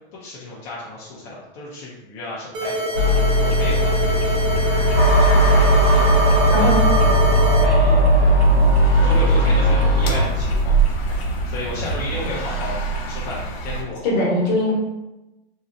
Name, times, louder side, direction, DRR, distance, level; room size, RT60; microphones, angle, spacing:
voice 1, 0.2-4.3 6.5-7.0 7.5-8.4 9.0-10.7 11.4-14.1, left 1 dB, 35° left, -7 dB, 0.5 m, -33 dB
sound 1, 2.5-7.6, right 1 dB, 30° right, 0.4 m, -25 dB
sound 2, 2.9-13.8, left 1 dB, 80° left, 0.7 m, -20 dB
sound 3, 4.9-10.2, right 2 dB, 55° right, 0.9 m, -18 dB
voice 2, 6.5-6.9 14.0-14.7, equal, 50° left, -4 dB, 1.1 m, -20 dB
2.7 x 2.0 x 2.5 m, 0.99 s
hypercardioid pair, 135°, 30 cm